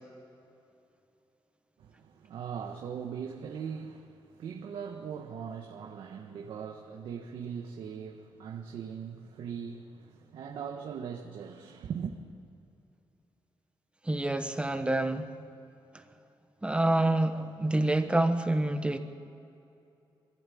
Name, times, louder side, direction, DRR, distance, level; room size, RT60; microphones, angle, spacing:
voice 1, 1.8-12.2, right 7 dB, 80° right, 1.6 m, -40 dB
voice 2, 14.0-15.3 16.6-19.0, right 1 dB, 15° right, 1.2 m, -27 dB
23.0 x 16.5 x 8.7 m
cardioid pair, 120°, 9 cm